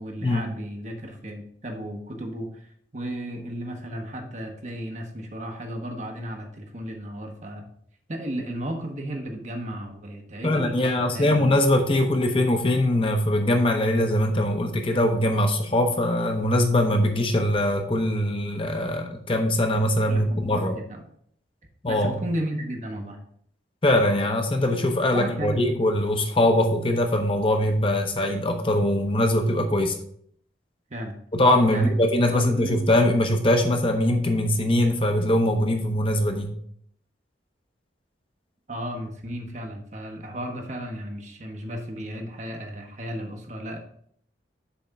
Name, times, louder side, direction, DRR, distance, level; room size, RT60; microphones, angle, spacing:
voice 1, 0.0-7.7 8.1-11.5 20.0-21.0 21.9-23.2 25.1-25.8 30.9-31.2 31.7-31.9 32.3-32.9 38.7-43.8, right 1 dB, 40° right, 3 dB, 1.0 m, -34 dB
voice 2, 10.4-20.8 21.8-22.2 23.8-30.0 31.3-36.5, left 1 dB, 30° left, 4 dB, 0.7 m, -22 dB
7.0 x 3.5 x 5.1 m, 0.63 s
head